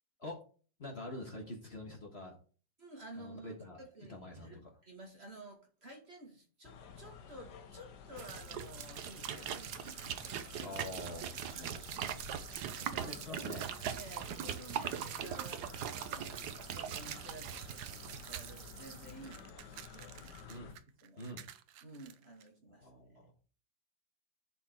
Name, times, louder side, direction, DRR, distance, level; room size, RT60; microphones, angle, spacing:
voice 1, 0.8-2.4 3.1-3.8 4.1-4.5 10.6-11.8 13.0-13.7 20.5-20.8 21.2-21.5 22.7-23.3, left 1 dB, 35° left, 0 dB, 1.6 m, -46 dB
voice 2, 2.8-10.2 10.5-10.7 11.2-13.4 14.0-20.3 21.0-21.3 21.8-22.9, right 1 dB, 35° right, 0 dB, 2.1 m, -53 dB
sound 1, 6.6-20.7, left 7 dB, 65° left, 1.5 m, -52 dB
sound 2, 8.2-19.1, right 9 dB, 65° right, 1.2 m, -41 dB
sound 3, 12.4-14.1 14.9-16.7 17.0-18.6 18.9-22.5, right 11 dB, 85° right, 1.4 m, -53 dB
11.0 x 4.4 x 4.4 m, 0.39 s
omnidirectional pair, 2.0 m